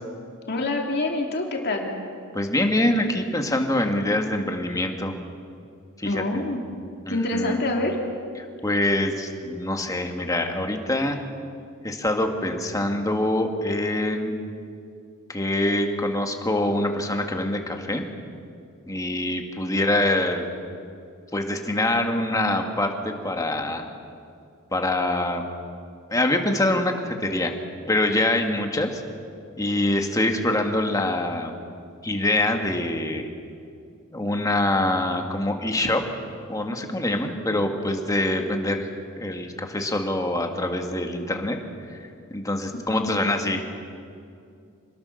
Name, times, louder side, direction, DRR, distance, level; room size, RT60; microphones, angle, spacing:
voice 1, 0.5-1.9 6.0-6.6 7.1-7.9 42.9-43.2, left 2 dB, 50° left, 1 dB, 2.7 m, -26 dB
voice 2, 2.3-5.1 6.0-6.5 7.1-7.6 8.4-11.2 11.8-14.3 15.3-18.1 18.9-20.5 21.3-23.8 24.7-25.4 26.1-27.5 27.9-29.0 29.6-31.5 32.0-33.3 34.1-36.0 36.5-38.9 39.2-41.6 41.9-42.0 42.3-43.8, left 1 dB, 15° left, 4 dB, 1.9 m, -25 dB
27.0 x 20.0 x 6.5 m, 2.4 s
head